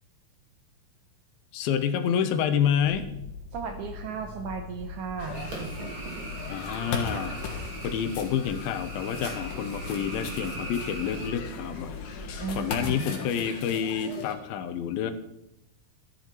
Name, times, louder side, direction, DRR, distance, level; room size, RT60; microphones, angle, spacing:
voice 1, 1.5-3.1 6.5-7.4 7.8-15.1, left 8 dB, 80° left, 9 dB, 2.6 m, -28 dB
sound 1, 2.8-12.7, left 2 dB, 45° left, 4.5 m, -42 dB
voice 2, 3.5-5.5 12.4-13.2, right 5 dB, 75° right, 5 dB, 1.9 m, -35 dB
sound 2, 5.2-14.3, left 5 dB, 60° left, 2.9 m, -39 dB
sound 3, 5.3-11.3, right 2 dB, 35° right, 3.2 m, -40 dB
13.5 x 9.9 x 4.5 m, 0.86 s
omnidirectional pair, 4.4 m